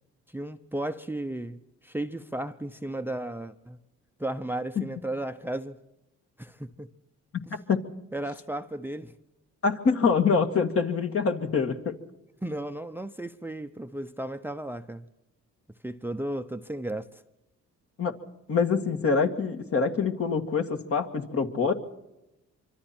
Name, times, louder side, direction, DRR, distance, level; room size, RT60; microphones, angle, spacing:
voice 1, 0.3-3.8 4.2-5.8 6.4-6.9 7.4-7.5 8.1-9.1 10.0-10.1 12.4-15.0 15.8-17.2, right 1 dB, 5° right, 0.8 m, -34 dB
voice 2, 9.6-11.9 18.0-18.1 18.5-21.7, left 5 dB, 50° left, 2.2 m, -25 dB
25.0 x 25.0 x 4.4 m
cardioid pair, 90°, 30 cm